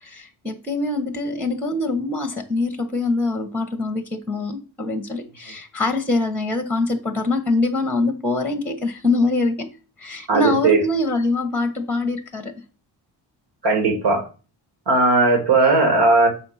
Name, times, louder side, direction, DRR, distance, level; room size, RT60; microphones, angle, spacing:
voice 1, 0.0-9.7 10.0-12.5, left 2 dB, 5° left, 1.0 m, -24 dB
voice 2, 10.3-10.8 13.6-14.2 14.9-16.3, right 3 dB, 65° right, 2.3 m, -17 dB
6.9 x 4.3 x 5.7 m
cardioid pair, 80°, 45 cm